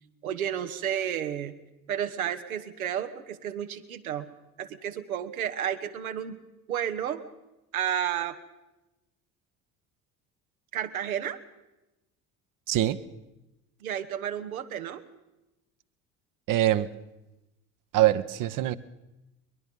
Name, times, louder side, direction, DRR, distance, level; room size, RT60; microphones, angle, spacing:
voice 1, 0.2-1.5 1.9-4.3 4.6-6.4 6.7-7.2 7.7-8.4 10.7-11.4 13.8-15.0, right 9 dB, 80° right, 7 dB, 1.3 m, -31 dB
voice 2, 12.7-13.0 16.5-16.9 17.9-18.8, right 13 dB, 50° right, 13 dB, 1.0 m, -23 dB
22.5 x 21.5 x 5.4 m, 0.97 s
figure-of-eight pair, 60°, 42 cm